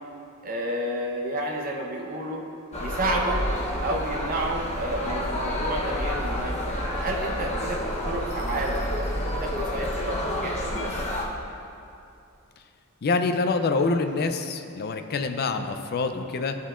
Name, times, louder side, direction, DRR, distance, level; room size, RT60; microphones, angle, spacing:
voice 1, 0.4-2.4 2.8-3.4 3.8-11.0, right 1 dB, 40° right, -1 dB, 0.9 m, -31 dB
sound 1, 2.7-11.2, left 1 dB, 30° left, 0.9 m, -29 dB
voice 2, 13.0-16.6, left 3 dB, 45° left, 8 dB, 0.4 m, -26 dB
12.0 x 5.4 x 2.4 m, 2.7 s
head